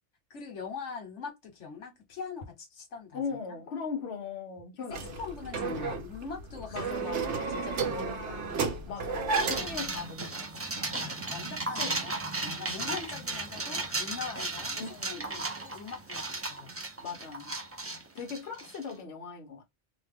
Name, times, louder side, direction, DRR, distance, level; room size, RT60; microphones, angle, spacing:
voice 1, 0.3-3.2 4.9-6.9 7.2-8.1 8.8-9.0 11.0-14.8 15.1-16.8, left 5 dB, 85° left, 1.3 m, -42 dB
voice 2, 3.1-5.5 6.7-8.5 8.9-11.0 11.7-12.0 12.6-13.0 14.7-15.5 17.0-17.6 18.1-19.6, left 5 dB, 65° left, 1.0 m, -40 dB
sound 1, 4.9-9.9, right 4 dB, 80° right, 1.0 m, -32 dB
sound 2, 9.3-18.9, right 2 dB, 25° right, 0.3 m, -35 dB
2.9 x 2.1 x 3.4 m
omnidirectional pair, 1.2 m